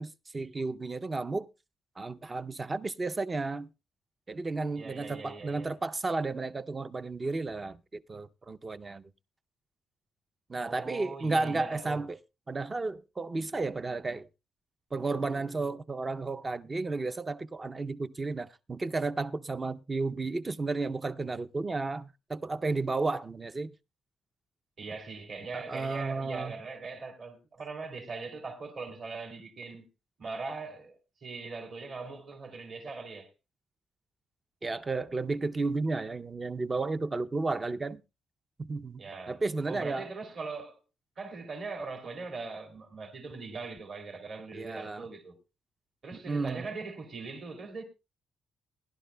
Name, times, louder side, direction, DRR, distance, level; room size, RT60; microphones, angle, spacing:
voice 1, 0.0-1.5 2.0-3.7 4.3-9.1 10.5-12.2 12.5-14.3 14.9-23.7 25.5-26.5 34.6-38.0 38.6-40.1 44.5-45.1 46.3-46.7, right 3 dB, 20° right, 0.5 m, -33 dB
voice 2, 4.7-5.7 10.6-12.0 24.8-29.9 30.2-33.3 39.0-39.4 39.7-40.8 41.2-45.4 46.0-47.8, right 4 dB, 45° right, 2.7 m, -41 dB
20.5 x 11.5 x 2.2 m
cardioid pair, 140°, 0 cm